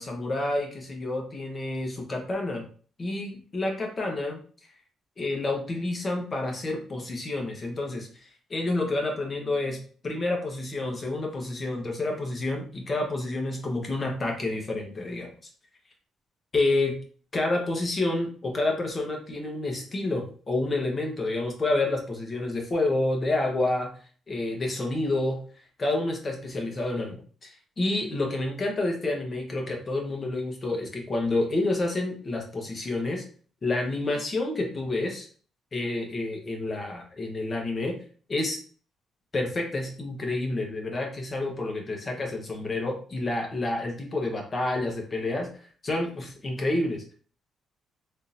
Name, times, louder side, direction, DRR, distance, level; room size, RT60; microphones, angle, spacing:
voice 1, 0.0-2.7 3.0-4.4 5.2-15.3 16.5-17.0 17.3-23.9 24.3-25.4 25.8-33.2 33.6-35.3 35.7-37.9 38.3-38.6 39.3-45.5 45.8-47.0, left 2 dB, 35° left, 1 dB, 0.9 m, -29 dB
3.6 x 2.5 x 2.8 m, 0.43 s
cardioid pair, 90°, 0 cm